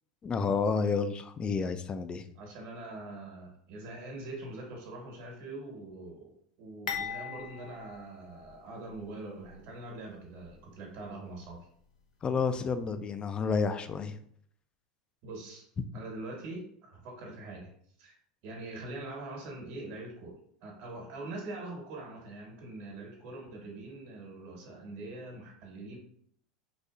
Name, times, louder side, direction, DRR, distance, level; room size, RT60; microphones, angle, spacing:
voice 1, 0.2-2.2 12.2-14.1, left 5 dB, 25° left, 11 dB, 0.3 m, -30 dB
voice 2, 2.3-11.7 15.2-15.7 15.9-17.7 18.0-18.1 18.4-26.0, right 2 dB, 60° right, 0 dB, 1.3 m, -43 dB
sound 1, 6.9-9.0 9.4-9.5 10.4-10.6, left 6 dB, 90° left, 0.5 m, -40 dB
4.0 x 2.7 x 2.3 m, 0.65 s
hypercardioid pair, 100°, 4 cm